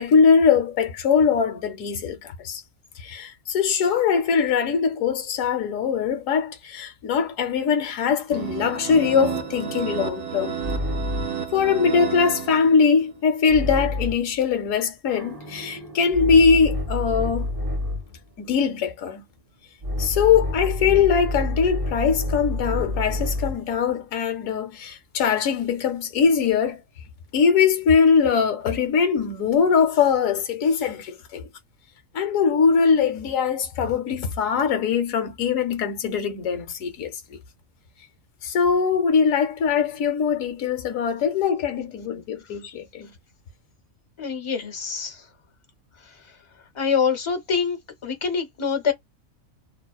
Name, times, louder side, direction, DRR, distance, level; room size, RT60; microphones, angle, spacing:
voice 1, 0.0-2.6 3.0-10.6 11.5-17.5 18.4-19.2 20.0-26.8 27.3-31.5 32.1-37.4 38.4-43.1, left 6 dB, 80° left, 1.0 m, -21 dB
sound 1, 8.3-13.0, right 7 dB, 75° right, 0.9 m, -31 dB
sound 2, 8.7-11.5 13.5-14.3 15.2-18.2 19.8-23.7, left 1 dB, 30° right, 0.3 m, -29 dB
voice 2, 44.2-45.3 46.0-46.2 46.7-48.9, left 6 dB, 50° left, 0.3 m, -25 dB
2.6 x 2.0 x 2.3 m
omnidirectional pair, 1.4 m